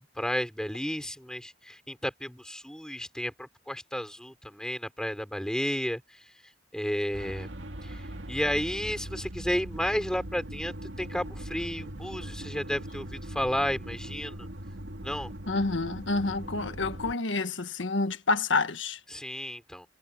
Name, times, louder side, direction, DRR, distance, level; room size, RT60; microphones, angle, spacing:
voice 1, 0.0-6.2 6.7-7.5 7.8-14.5 15.0-15.3 19.1-19.9, equal, 5° left, 4.1 m, -32 dB
sound 1, 7.1-17.1, right 1 dB, 80° right, 2.3 m, -40 dB
voice 2, 15.5-19.0, left 3 dB, 90° left, 1.5 m, -28 dB
head